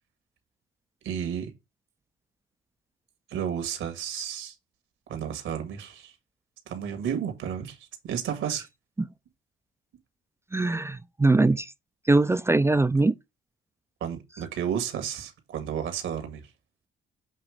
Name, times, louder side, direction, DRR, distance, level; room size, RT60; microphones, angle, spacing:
voice 1, 1.0-1.5 3.3-4.5 5.1-6.1 6.7-8.7 14.0-16.5, right 8 dB, 80° right, 1.8 m, -32 dB
voice 2, 10.5-11.7 12.1-13.1, right 2 dB, 15° right, 0.4 m, -22 dB
7.5 x 3.0 x 4.9 m
cardioid pair, 90°, 20 cm